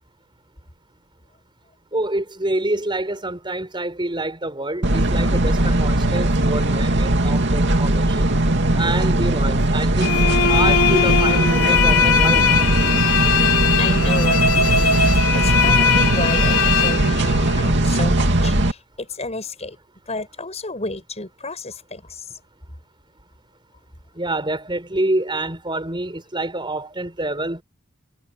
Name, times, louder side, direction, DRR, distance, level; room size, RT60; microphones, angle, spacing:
voice 1, 1.9-8.3 8.8-12.5 24.1-27.6, right 2 dB, 25° right, 5.2 m, -27 dB
sound 1, 4.8-18.7, right 1 dB, 55° right, 2.8 m, -19 dB
sound 2, 10.0-17.7, left 6 dB, 85° left, 3.0 m, -20 dB
voice 2, 13.4-19.8 20.1-22.3, left 2 dB, 30° left, 7.0 m, -31 dB
head